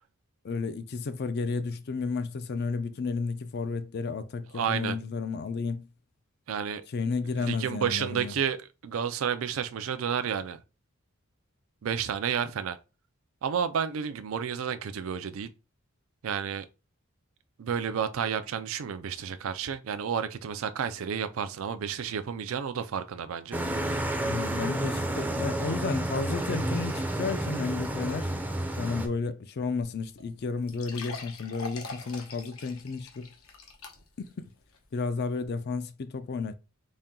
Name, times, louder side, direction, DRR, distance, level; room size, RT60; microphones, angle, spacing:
voice 1, 0.4-5.9 6.9-8.3 24.2-28.3 28.7-33.3 34.2-34.5 34.9-36.6, left 4 dB, 50° left, 0.4 m, -32 dB
voice 2, 4.5-5.0 6.5-6.8 7.3-10.6 11.8-12.8 13.4-15.5 16.2-16.7 17.6-23.6, right 7 dB, 70° right, 0.4 m, -31 dB
sound 1, 23.5-29.1, right 1 dB, 10° right, 0.5 m, -30 dB
sound 2, 29.8-29.9 30.2-30.3 30.7-34.3 34.7-34.8 35.4-35.5, left 3 dB, 85° left, 0.9 m, -43 dB
4.1 x 2.2 x 3.6 m
head